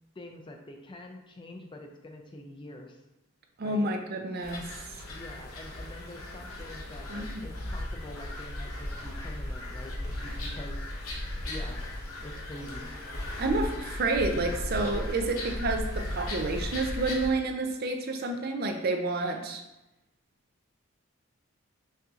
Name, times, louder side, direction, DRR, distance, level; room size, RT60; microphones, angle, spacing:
voice 1, 0.2-3.0 3.6-3.9 5.1-9.9 10.2-10.9 11.4-11.8 12.2-12.9, left 1 dB, 25° left, 3 dB, 0.3 m, -45 dB
voice 2, 3.6-4.7 7.1-7.5 13.4-19.6, right 2 dB, 45° right, 4 dB, 0.4 m, -29 dB
sound 1, 4.4-17.3, left 1 dB, 85° left, 0.8 m, -36 dB
5.5 x 2.7 x 2.4 m, 0.97 s
head